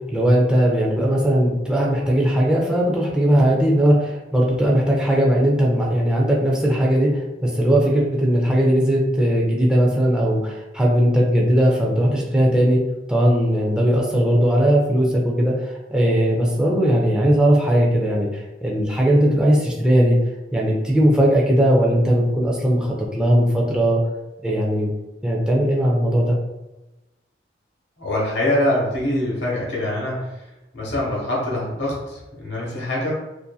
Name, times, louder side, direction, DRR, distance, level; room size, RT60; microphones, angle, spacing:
voice 1, 0.1-12.8 13.1-20.2 20.5-24.0 24.4-24.9 25.2-26.4, equal, 5° right, -3 dB, 0.4 m, -18 dB
voice 2, 28.0-33.1, left 1 dB, 70° left, -4 dB, 1.0 m, -24 dB
2.6 x 2.5 x 2.3 m, 1.0 s
head